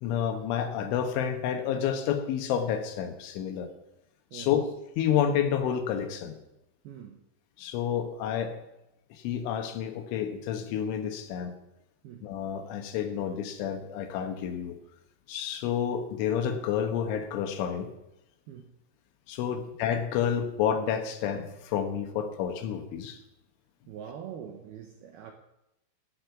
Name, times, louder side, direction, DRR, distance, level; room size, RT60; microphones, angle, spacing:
voice 1, 0.0-3.7 4.3-4.6 5.0-6.4 7.6-8.6 9.1-11.5 12.2-14.8 15.3-17.9 19.3-23.2, left 8 dB, 75° left, 7 dB, 3.6 m, -29 dB
voice 2, 6.8-7.2 12.0-12.3 18.5-18.7 19.5-19.7 23.9-25.3, right 8 dB, 75° right, 4 dB, 2.3 m, -44 dB
16.5 x 6.5 x 8.3 m, 0.87 s
omnidirectional pair, 5.7 m